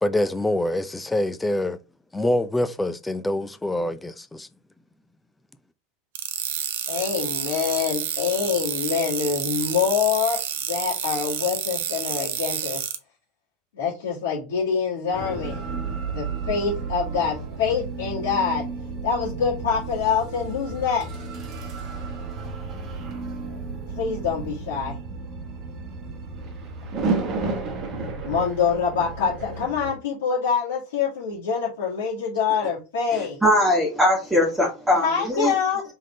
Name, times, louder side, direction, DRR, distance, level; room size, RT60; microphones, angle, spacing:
voice 1, 0.0-1.8 2.1-4.5, left 1 dB, 10° left, 0.5 m, -25 dB
sound 1, 6.1-13.0, right 9 dB, 60° right, 0.6 m, -29 dB
voice 2, 6.9-10.4 10.7-12.8 13.7-15.7 16.1-18.6 19.0-21.0 23.9-24.9 28.2-33.4 35.0-35.8, left 6 dB, 65° left, 1.8 m, -25 dB
sound 2, 15.1-29.9, right 4 dB, 40° right, 1.0 m, -32 dB
voice 3, 33.1-35.5, left 1 dB, 10° right, 1.4 m, -21 dB
3.7 x 3.7 x 3.2 m
figure-of-eight pair, 80°, 0 cm